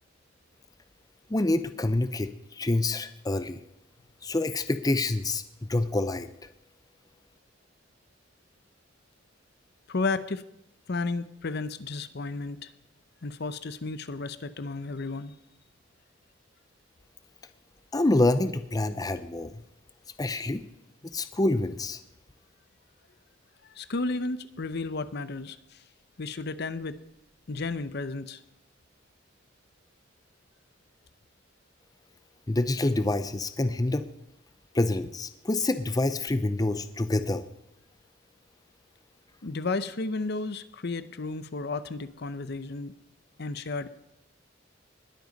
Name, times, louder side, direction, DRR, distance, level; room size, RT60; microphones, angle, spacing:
voice 1, 1.3-3.6 4.2-5.4 5.7-6.3 17.9-19.5 20.2-20.6 21.0-22.0 32.5-34.1 34.7-37.4, left 2 dB, 20° left, 11 dB, 0.6 m, -27 dB
voice 2, 9.9-10.4 10.9-12.7 13.2-15.3 23.7-25.8 26.2-27.0 27.5-28.4 39.4-42.9 43.4-44.1, left 3 dB, 60° left, 14 dB, 0.8 m, -33 dB
20.5 x 8.0 x 5.3 m, 0.83 s
head